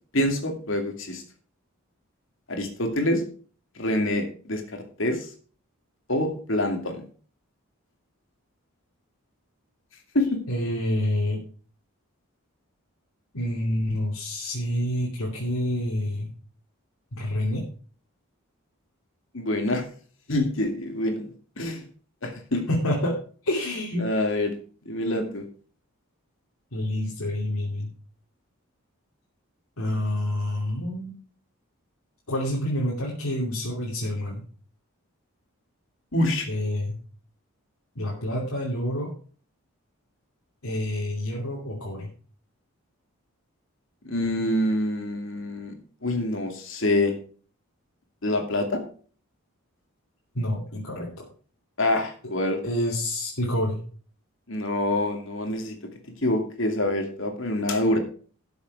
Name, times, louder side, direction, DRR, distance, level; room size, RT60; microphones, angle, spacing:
voice 1, 0.1-1.2 2.5-3.2 3.8-5.3 6.1-7.0 10.1-10.4 19.3-19.8 20.3-21.2 21.6-21.8 22.2-22.6 24.0-24.5 24.9-25.4 36.1-36.5 44.0-45.7 46.0-47.1 48.2-48.8 51.8-52.6 54.5-55.7 56.2-58.0, left 1 dB, 60° left, 4 dB, 2.6 m, -26 dB
voice 2, 10.5-11.4 13.3-16.3 17.1-17.6 22.5-24.1 26.7-27.9 29.8-31.2 32.3-34.4 36.5-37.0 37.9-39.1 40.6-42.1 50.3-51.1 52.6-53.8, left 1 dB, 85° left, -4 dB, 2.8 m, -28 dB
13.0 x 7.1 x 4.8 m, 0.41 s
head